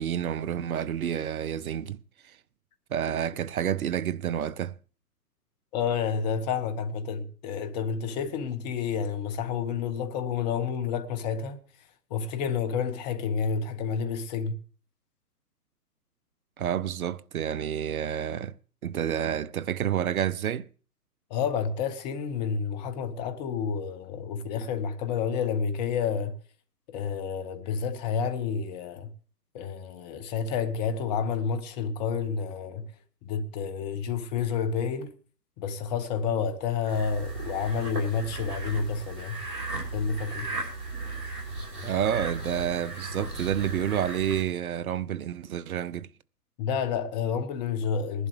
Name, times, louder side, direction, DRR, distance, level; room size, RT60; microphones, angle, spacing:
voice 1, 0.0-2.0 2.9-4.7 16.6-18.5 18.8-20.7 41.8-46.1, right 9 dB, 60° right, 0.7 m, -29 dB
voice 2, 5.7-11.6 12.1-14.6 21.3-26.3 26.9-29.1 29.5-32.9 33.2-35.1 35.6-39.4 39.9-40.5 46.6-48.3, left 6 dB, 25° left, 1.2 m, -29 dB
sound 1, 36.9-44.4, right 3 dB, 75° right, 5.6 m, -36 dB
20.0 x 11.0 x 3.3 m
figure-of-eight pair, 125°, 48 cm